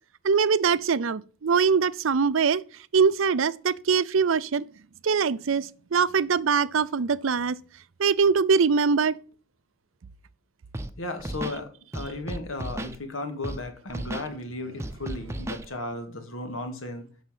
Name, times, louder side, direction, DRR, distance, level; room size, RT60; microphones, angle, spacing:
voice 1, 0.2-2.6 2.9-4.6 5.0-7.6 8.0-9.2, right 5 dB, 75° right, 0.5 m, -22 dB
Scratching (performance technique), 10.7-10.9 11.2-11.6 11.9-13.0 13.4-13.6 13.9-14.3 14.8-15.7, right 1 dB, 15° right, 0.7 m, -34 dB
voice 2, 11.0-17.0, left 2 dB, 85° left, 2.0 m, -35 dB
8.2 x 5.8 x 7.4 m
head